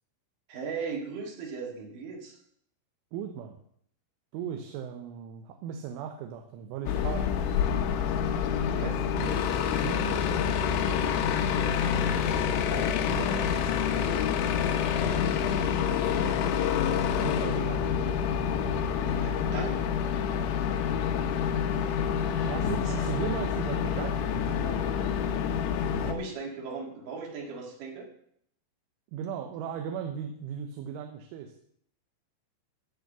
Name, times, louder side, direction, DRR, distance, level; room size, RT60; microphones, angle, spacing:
voice 1, 0.5-2.4 8.7-9.0 19.0-19.9 21.6-22.0 22.3-22.5 22.9-23.2 25.9-28.1, right 5 dB, 55° right, 1 dB, 3.1 m, -38 dB
voice 2, 3.1-3.6 4.3-7.3 8.6-10.4 12.4-13.6 17.2-17.9 20.3-20.6 22.5-25.1 29.1-31.5, right 8 dB, 80° right, 4 dB, 3.4 m, -37 dB
sound 1, 6.9-26.1, left 7 dB, 80° left, 3.3 m, -27 dB
15.5 x 5.2 x 6.7 m, 0.68 s
omnidirectional pair, 5.6 m